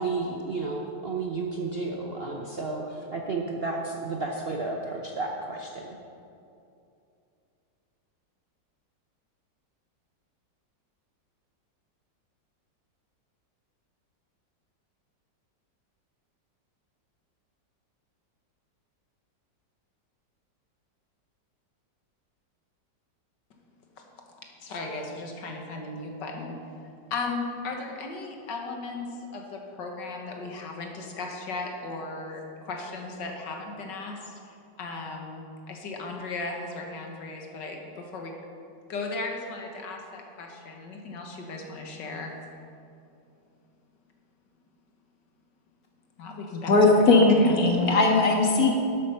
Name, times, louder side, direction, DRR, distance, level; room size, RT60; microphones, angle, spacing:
voice 1, 0.0-6.0, right 3 dB, 50° right, 0 dB, 0.8 m, -32 dB
voice 2, 24.6-26.6 27.1-38.3 38.9-42.3 46.2-47.6, left 3 dB, 75° left, 2 dB, 1.9 m, -36 dB
voice 3, 46.7-48.7, left 3 dB, 55° left, 1 dB, 1.9 m, -19 dB
11.5 x 8.4 x 5.7 m, 2.6 s
omnidirectional pair, 2.0 m